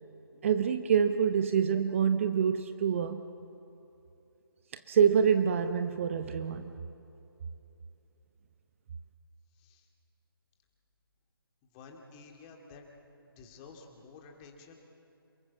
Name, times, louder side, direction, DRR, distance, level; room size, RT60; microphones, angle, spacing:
voice 1, 0.4-3.2 4.7-6.8, right 7 dB, 35° right, 9 dB, 0.9 m, -26 dB
voice 2, 9.5-9.9 11.6-12.9 13.4-14.7, left 4 dB, 20° left, 2 dB, 2.6 m, -52 dB
28.0 x 20.5 x 7.2 m, 2.9 s
figure-of-eight pair, 145°, 13 cm